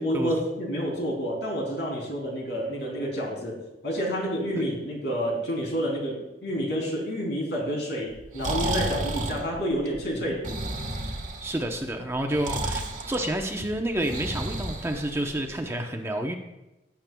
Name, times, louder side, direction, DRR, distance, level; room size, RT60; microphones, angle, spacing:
voice 1, 0.0-10.4, equal, 75° left, -1 dB, 3.4 m, -29 dB
Breathing, 8.1-15.5, right 2 dB, 45° right, 1.4 m, -32 dB
voice 2, 11.4-16.3, right 1 dB, 15° right, 3 dB, 0.8 m, -29 dB
18.0 x 8.5 x 2.3 m, 0.96 s
head